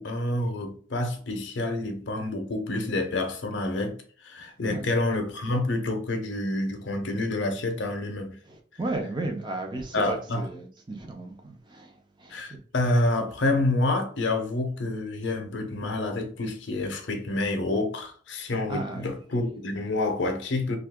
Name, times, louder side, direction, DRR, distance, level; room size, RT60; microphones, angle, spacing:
voice 1, 0.0-4.0 4.2-8.4 9.9-10.5 12.3-20.8, left 2 dB, 60° left, 0.6 m, -28 dB
voice 2, 8.8-11.9 12.2-12.4 18.7-19.1, right 2 dB, 20° right, 0.5 m, -34 dB
2.6 x 2.4 x 3.5 m
head